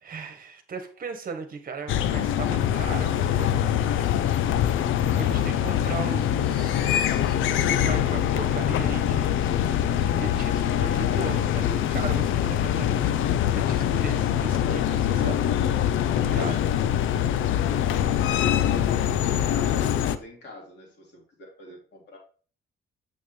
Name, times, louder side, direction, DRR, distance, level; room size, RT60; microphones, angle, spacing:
voice 1, 0.0-4.0 5.1-9.3 9.6-9.9 10.2-13.2 13.5-15.5 16.2-16.6, right 5 dB, 45° right, 6 dB, 1.4 m, -38 dB
sound 1, 1.9-20.2, left 10 dB, 80° left, 0.5 m, -24 dB
voice 2, 18.5-22.2, left 2 dB, 60° left, -1 dB, 3.4 m, -45 dB
7.1 x 6.6 x 3.3 m, 0.40 s
cardioid pair, 90°, 20 cm